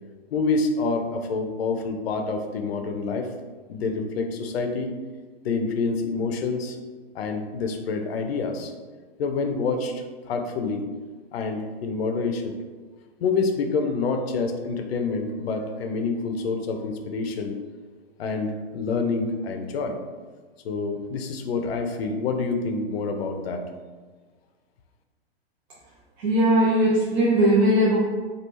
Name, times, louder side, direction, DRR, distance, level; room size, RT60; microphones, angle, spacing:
voice 1, 0.3-3.3 3.7-4.9 5.4-6.8 7.1-8.7 9.2-10.8 11.3-12.5 13.2-17.6 18.2-20.0 20.6-23.6, left 4 dB, 75° left, 5 dB, 0.6 m, -27 dB
voice 2, 26.2-28.0, right 1 dB, 50° right, -6 dB, 0.7 m, -19 dB
3.3 x 2.4 x 3.0 m, 1.4 s
hypercardioid pair, 130°, 31 cm